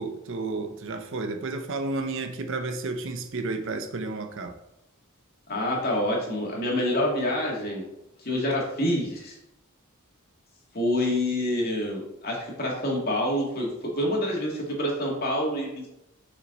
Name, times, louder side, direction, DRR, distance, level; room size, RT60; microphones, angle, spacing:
voice 1, 0.0-4.6, right 3 dB, 60° right, 7 dB, 0.8 m, -32 dB
voice 2, 5.5-7.8 8.2-9.3 10.7-15.9, left 1 dB, 45° left, -2 dB, 2.3 m, -27 dB
6.5 x 6.1 x 4.0 m, 0.85 s
head